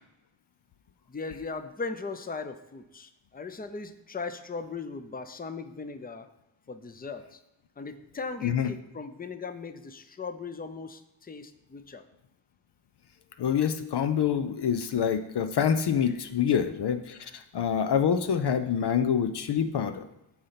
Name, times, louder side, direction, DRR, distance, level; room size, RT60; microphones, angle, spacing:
voice 1, 1.1-6.3 6.7-7.4 7.8-12.0, left 4 dB, 20° left, 10 dB, 0.7 m, -38 dB
voice 2, 8.4-8.7 13.4-20.0, left 8 dB, 60° left, 9 dB, 0.6 m, -26 dB
8.4 x 4.3 x 5.7 m, 0.87 s
cardioid pair, 50°, 47 cm